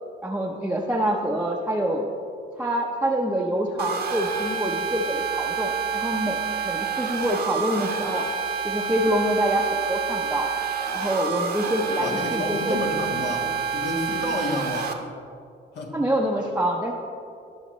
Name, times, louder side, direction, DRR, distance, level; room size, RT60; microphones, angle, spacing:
voice 1, 0.2-2.0 2.6-8.2 8.6-10.5 10.9-12.8 15.9-16.9, right 1 dB, 5° right, -2 dB, 0.8 m, -26 dB
sound 1, 3.8-14.9, right 6 dB, 50° right, 1.1 m, -28 dB
voice 2, 12.0-15.0 15.7-15.9, left 2 dB, 60° left, 0 dB, 1.6 m, -30 dB
18.5 x 6.4 x 3.2 m, 2.5 s
cardioid pair, 90°, 20 cm